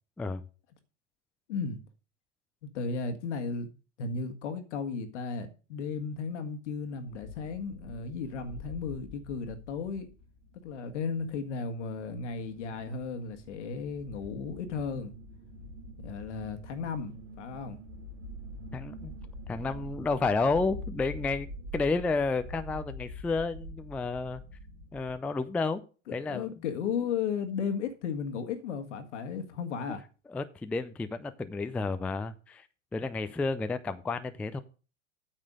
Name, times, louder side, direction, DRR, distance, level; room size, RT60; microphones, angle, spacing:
voice 1, 1.5-1.8 2.6-3.7 4.0-10.1 10.6-15.1 16.0-17.8 26.1-30.0, left 5 dB, 70° left, 1.6 m, -35 dB
sound 1, 7.0-25.2, equal, 75° right, 2.7 m, -45 dB
voice 2, 18.7-19.2 19.5-21.5 21.7-24.4 24.9-25.8 26.1-26.5 30.3-32.6 32.9-34.6, left 3 dB, 5° left, 0.3 m, -31 dB
9.0 x 6.6 x 5.0 m
hypercardioid pair, 90°, 37 cm